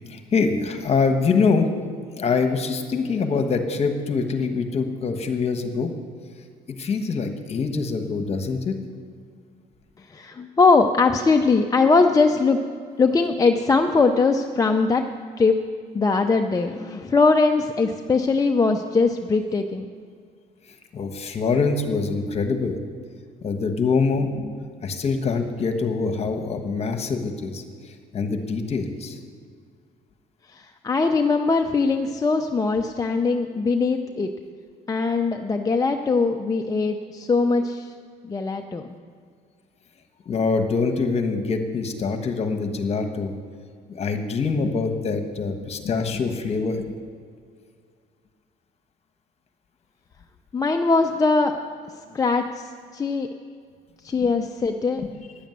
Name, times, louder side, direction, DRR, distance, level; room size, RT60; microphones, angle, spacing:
voice 1, 0.1-1.7 2.1-5.9 6.8-8.7 20.9-22.8 23.4-24.5 24.8-27.6 28.1-29.2 40.3-43.3 43.9-46.9 55.0-55.1, left 4 dB, 40° left, 6 dB, 1.3 m, -24 dB
voice 2, 10.1-12.6 13.0-15.6 15.9-19.9 30.5-34.3 34.9-37.9 38.2-38.8 50.5-51.5 52.1-53.3 54.0-55.0, left 4 dB, 20° left, 4 dB, 0.6 m, -21 dB
10.5 x 7.2 x 9.3 m, 2.1 s
cardioid pair, 110°, 17 cm